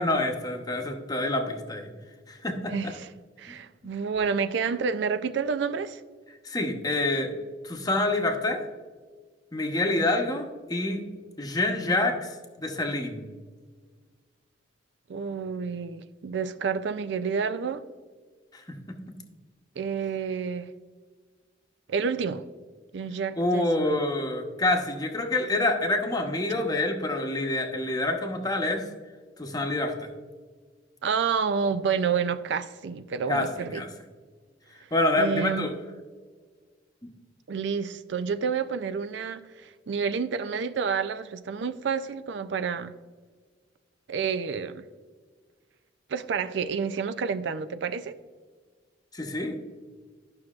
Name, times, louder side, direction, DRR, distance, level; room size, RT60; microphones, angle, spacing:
voice 1, 0.0-1.9 2.3-2.7 6.4-7.3 7.6-8.6 9.5-11.0 11.4-12.3 12.6-13.3 18.5-18.6 23.4-28.8 29.4-30.1 33.3-33.5 33.7-33.9 34.9-35.7 49.1-49.6, left 2 dB, 20° left, 0.9 m, -27 dB
voice 2, 2.7-3.1 3.4-6.0 15.1-17.8 19.8-20.7 21.9-22.4 22.9-24.0 31.0-33.8 35.2-35.8 37.5-42.9 44.1-44.8 46.1-48.2, right 6 dB, 70° right, 0.4 m, -29 dB
11.5 x 6.2 x 2.4 m
head